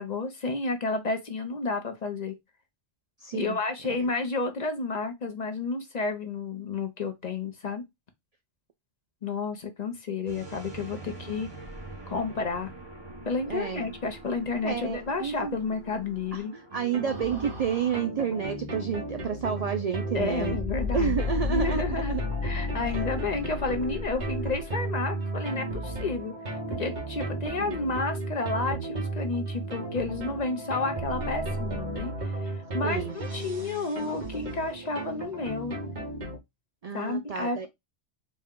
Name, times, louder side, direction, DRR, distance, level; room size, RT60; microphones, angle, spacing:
voice 1, 0.0-2.3 3.3-7.8 9.2-11.5 12.1-12.7 13.3-16.5 20.1-21.2 21.5-22.2 22.4-35.8 36.9-37.7, left 3 dB, 45° left, 0.7 m, -31 dB
voice 2, 3.2-3.6 13.5-13.9 14.6-15.6 16.3-20.6 20.9-22.2 27.6-28.0 32.8-33.1 36.8-37.7, right 7 dB, 60° right, 0.4 m, -30 dB
sound 1, 10.3-18.0, right 2 dB, 25° right, 1.0 m, -45 dB
sound 2, 16.7-36.4, equal, 45° right, 1.2 m, -33 dB
4.1 x 2.3 x 3.6 m
omnidirectional pair, 1.1 m